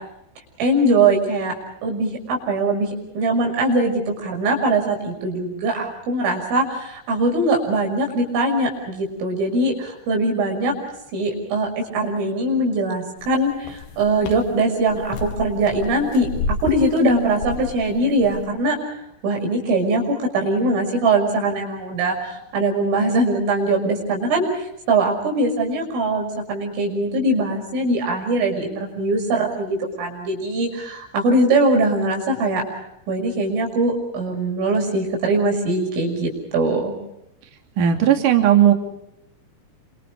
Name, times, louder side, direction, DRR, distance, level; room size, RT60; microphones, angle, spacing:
voice 1, 0.6-1.5 1.8-2.9 3.2-10.7 11.1-18.8 19.2-32.6 33.1-37.0, right 2 dB, 80° right, 1 dB, 8.7 m, -21 dB
sound 1, 13.2-18.4, left 4 dB, 65° left, 3.6 m, -31 dB
voice 2, 37.8-38.7, right 10 dB, 45° right, 4 dB, 3.9 m, -15 dB
30.0 x 27.0 x 4.9 m, 0.81 s
omnidirectional pair, 5.7 m